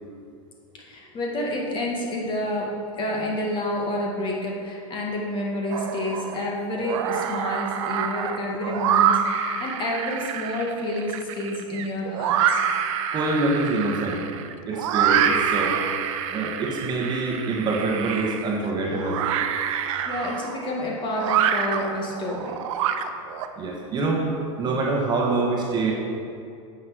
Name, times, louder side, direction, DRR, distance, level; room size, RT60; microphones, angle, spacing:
voice 1, 0.7-12.6 20.1-22.5, left 1 dB, 30° left, -2 dB, 1.9 m, -29 dB
sound 1, 5.7-6.4 6.7-23.5, right 8 dB, 65° right, 0.7 m, -26 dB
voice 2, 13.1-14.3 14.7-15.8 16.3-19.2 23.6-24.2 24.6-25.9, right 3 dB, 25° right, -1 dB, 1.5 m, -25 dB
9.2 x 6.4 x 6.2 m, 2.5 s
supercardioid pair, 135°, 17 cm